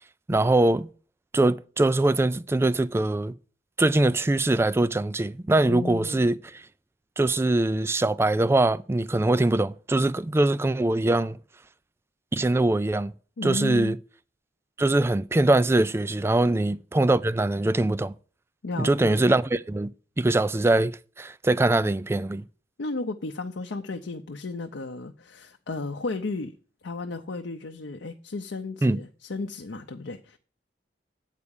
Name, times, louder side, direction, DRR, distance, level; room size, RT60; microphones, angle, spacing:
voice 1, 0.3-0.9 1.3-3.3 3.8-6.4 7.2-11.4 12.3-13.1 13.4-14.0 14.8-18.1 18.8-19.9 20.2-20.9 21.2-22.4 28.8-29.0, right 2 dB, 15° right, 0.3 m, -22 dB
voice 2, 5.7-6.3 13.4-14.0 18.6-19.3 22.8-26.5 26.8-30.4, left 3 dB, 90° left, 0.6 m, -34 dB
8.3 x 4.8 x 7.0 m
head